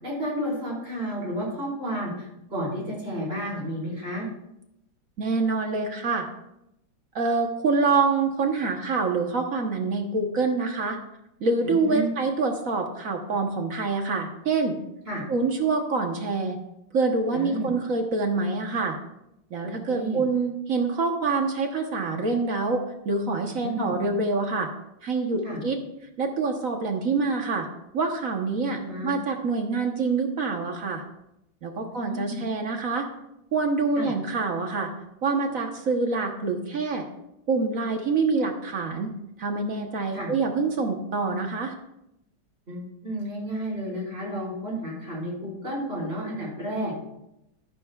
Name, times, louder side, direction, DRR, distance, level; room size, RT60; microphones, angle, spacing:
voice 1, 0.0-4.3 11.6-12.1 15.1-15.2 17.3-17.7 19.6-20.2 23.6-23.9 25.4-25.6 28.6-29.1 31.8-32.3 34.0-34.1 40.1-40.3 42.7-46.9, equal, 30° right, -4 dB, 4.9 m, -32 dB
voice 2, 5.2-6.3 7.1-11.0 11.4-14.8 15.3-16.6 16.9-19.0 19.5-24.7 25.0-25.8 26.2-27.7 27.9-31.0 31.6-33.1 33.5-34.9 35.2-37.0 37.5-39.1 39.4-41.7, right 4 dB, 50° right, 3 dB, 1.3 m, -26 dB
14.0 x 12.0 x 2.4 m, 0.84 s
omnidirectional pair, 2.2 m